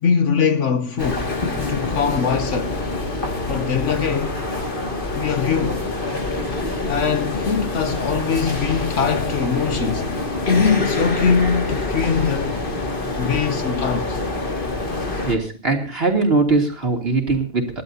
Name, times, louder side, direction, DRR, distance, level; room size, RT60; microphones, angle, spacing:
voice 1, 0.0-1.3 1.7-2.8 3.5-4.5 5.2-5.9 6.8-10.1 10.5-12.6 13.2-14.2, left 6 dB, 60° left, 1.2 m, -22 dB
sound 1, 1.0-15.4, left 2 dB, 35° left, 2.4 m, -26 dB
voice 2, 15.2-17.8, right 3 dB, 45° right, 3.1 m, -20 dB
28.0 x 12.0 x 2.8 m
omnidirectional pair, 1.5 m